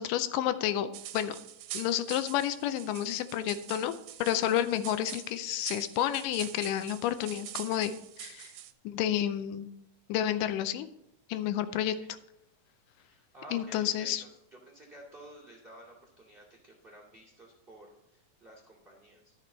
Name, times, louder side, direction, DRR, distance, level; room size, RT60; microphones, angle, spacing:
voice 1, 0.0-1.4 1.7-3.9 4.2-8.5 8.8-9.7 10.1-10.9 11.3-12.0 13.5-14.2, left 11 dB, 80° left, 12 dB, 2.2 m, -30 dB
sound 1, 0.9-8.7, right 13 dB, 85° right, 2.2 m, -45 dB
voice 2, 11.8-12.1 13.0-19.3, right 1 dB, 20° right, -2 dB, 1.9 m, -52 dB
13.0 x 6.0 x 3.9 m, 0.82 s
omnidirectional pair, 3.8 m